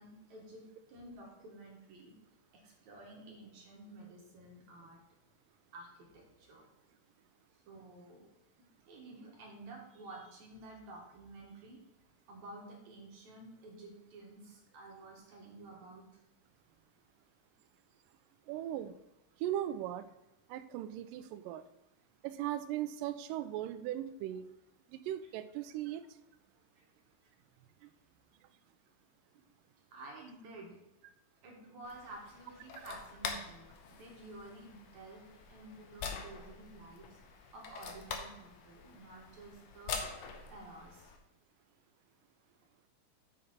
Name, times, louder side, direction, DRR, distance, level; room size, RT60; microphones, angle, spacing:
voice 1, 0.0-2.1 2.6-5.0 5.7-6.7 7.7-8.3 8.9-11.8 12.3-16.1 26.8-26.9 29.9-30.8 31.4-35.2 35.5-37.1 37.5-40.0 40.5-41.1, right 2 dB, 65° right, -1 dB, 2.5 m, -51 dB
voice 2, 18.5-18.9 19.4-20.1 20.5-21.6 22.2-24.5 24.9-26.0, right 12 dB, 85° right, 11 dB, 2.2 m, -38 dB
sound 1, 31.8-41.2, left 5 dB, 70° left, 1.7 m, -45 dB
7.7 x 5.3 x 4.3 m, 0.91 s
omnidirectional pair, 3.8 m